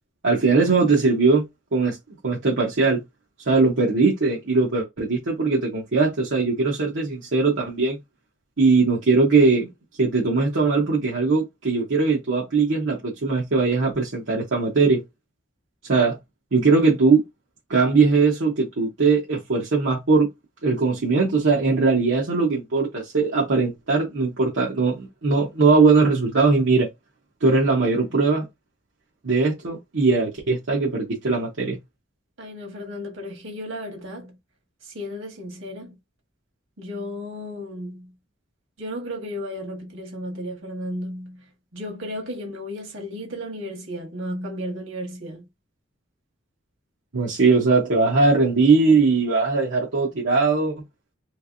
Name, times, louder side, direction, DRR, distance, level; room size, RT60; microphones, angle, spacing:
voice 1, 0.2-1.5 1.7-2.0 2.2-3.0 3.5-8.0 8.6-9.7 10.0-15.0 15.9-16.2 16.5-17.2 17.7-20.3 20.6-26.9 27.4-28.5 29.2-31.8 47.1-50.8, right 4 dB, 70° right, 0.9 m, -20 dB
voice 2, 32.4-34.3 34.9-35.9 36.8-38.1 38.8-41.4 41.7-45.4, left 1 dB, 85° right, 1.6 m, -34 dB
3.2 x 3.2 x 2.5 m
head